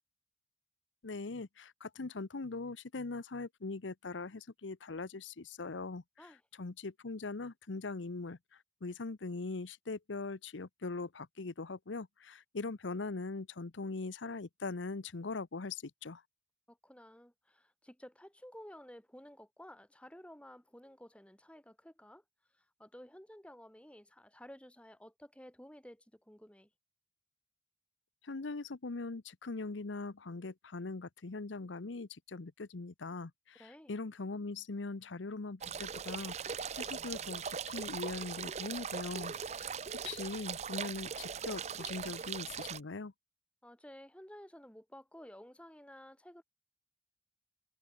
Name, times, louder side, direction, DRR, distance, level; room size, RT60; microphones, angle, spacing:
voice 1, 1.0-6.3 6.6-16.2 28.2-39.8 40.0-43.1, left 3 dB, 90° left, 0.9 m, -41 dB
voice 2, 16.7-22.2 22.5-26.7 33.6-33.9 43.6-46.4, equal, 5° left, 1.5 m, -53 dB
sound 1, 35.6-42.8, right 6 dB, 35° right, 0.6 m, -40 dB
head